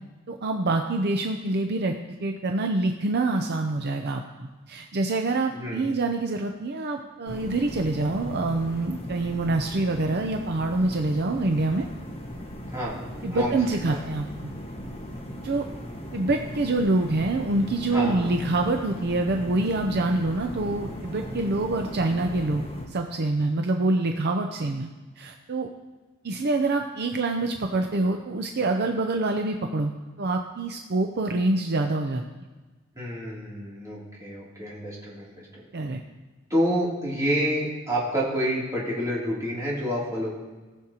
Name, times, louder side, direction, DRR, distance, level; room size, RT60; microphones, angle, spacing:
voice 1, 0.3-1.9 2.2-11.9 13.2-14.5 15.4-15.7 16.1-24.9 25.2-25.7 26.2-29.9 30.2-32.2 35.7-36.0, right 2 dB, 55° right, 4 dB, 0.6 m, -26 dB
voice 2, 5.5-5.9 12.7-13.0 13.3-13.5 13.9-14.0 17.9-18.3 33.0-35.4 36.5-40.3, equal, 15° right, -7 dB, 2.9 m, -28 dB
sound 1, 7.3-22.9, equal, 30° left, 1.5 m, -38 dB
18.5 x 6.4 x 2.9 m, 1.3 s
head